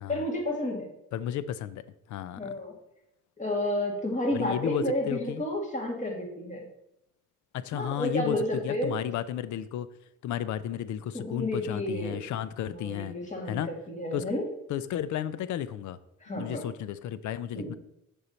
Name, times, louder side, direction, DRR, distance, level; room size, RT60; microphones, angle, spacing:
voice 1, 0.1-0.9 2.4-2.7 3.4-6.7 7.7-8.9 11.1-12.2 12.7-13.6 13.9-14.5 16.2-16.7 17.5-17.8, left 1 dB, 25° left, 0 dB, 2.3 m, -31 dB
voice 2, 1.1-1.8 2.1-2.5 4.3-5.4 7.5-8.4 8.6-9.9 10.2-13.1 13.5-13.7 14.1-14.2 14.7-16.0 16.3-17.7, left 10 dB, 75° left, 15 dB, 0.6 m, -33 dB
6.8 x 5.4 x 4.3 m, 0.84 s
cardioid pair, 90°, 30 cm